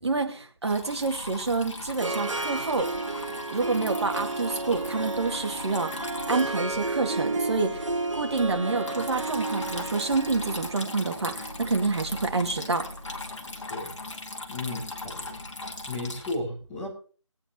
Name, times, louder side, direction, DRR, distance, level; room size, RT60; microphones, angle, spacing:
voice 1, 0.0-2.9 3.5-7.8 8.1-12.9, right 3 dB, 55° right, 4 dB, 2.0 m, -28 dB
Water tap faucet / Trickle dribble, 0.6-16.3, left 2 dB, 65° left, 2.0 m, -39 dB
Harp, 1.3-13.5, right 2 dB, 70° right, 1.6 m, -33 dB
voice 2, 13.7-14.0 14.5-15.6 15.9-16.9, left 2 dB, 10° left, -6 dB, 2.6 m, -34 dB
22.5 x 8.9 x 2.9 m, 0.38 s
figure-of-eight pair, 165°, 17 cm